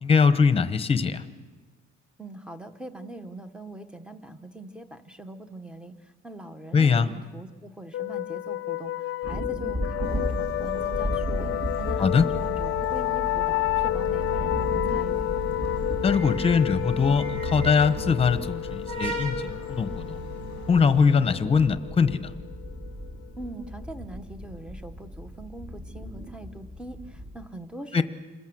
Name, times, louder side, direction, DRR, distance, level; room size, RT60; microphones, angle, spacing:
voice 1, 0.0-1.2 6.7-7.1 12.0-12.2 16.0-20.2 20.7-22.3 27.9-28.0, left 5 dB, 20° left, 12 dB, 1.1 m, -22 dB
voice 2, 2.2-15.2 23.4-28.0, right 1 dB, 5° right, 9 dB, 1.0 m, -42 dB
sound 1, 7.9-23.3, left 15 dB, 45° left, 0.7 m, -30 dB
sound 2, 9.2-27.5, equal, 20° right, 1.7 m, -37 dB
sound 3, 10.0-21.1, right 2 dB, 75° right, 5.9 m, -37 dB
28.0 x 21.0 x 7.8 m, 1.3 s
cardioid pair, 170°, 29 cm